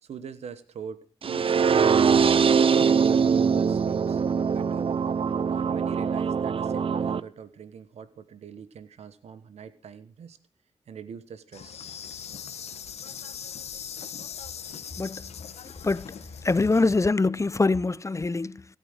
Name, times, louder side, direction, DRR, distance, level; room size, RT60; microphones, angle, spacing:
voice 1, 0.0-4.2 4.5-4.9 5.5-10.4 10.9-11.8 14.0-14.1, right 7 dB, 90° right, 1.2 m, -43 dB
sound 1, 1.2-7.2, right 6 dB, 60° right, 0.6 m, -22 dB
Insect, 11.5-17.0, left 8 dB, 85° left, 1.1 m, -40 dB
voice 2, 15.0-15.3 15.8-16.2 16.4-18.7, left 3 dB, 30° left, 0.6 m, -24 dB
16.0 x 9.2 x 6.5 m
cardioid pair, 50°, 11 cm